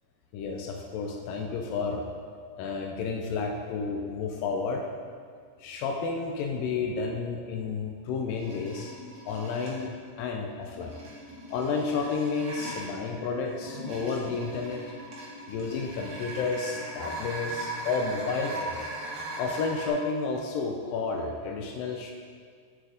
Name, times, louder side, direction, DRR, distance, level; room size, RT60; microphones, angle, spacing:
voice 1, 0.3-2.1 2.6-4.9 5.6-8.9 9.3-9.9 10.2-11.0 11.5-14.8 15.5-18.9 19.4-22.1, left 4 dB, 85° left, 2 dB, 2.0 m, -31 dB
sound 1, 8.3-9.9 10.6-19.9, right 1 dB, 70° right, 1.1 m, -39 dB
8.3 x 7.8 x 3.7 m, 2.1 s
omnidirectional pair, 4.6 m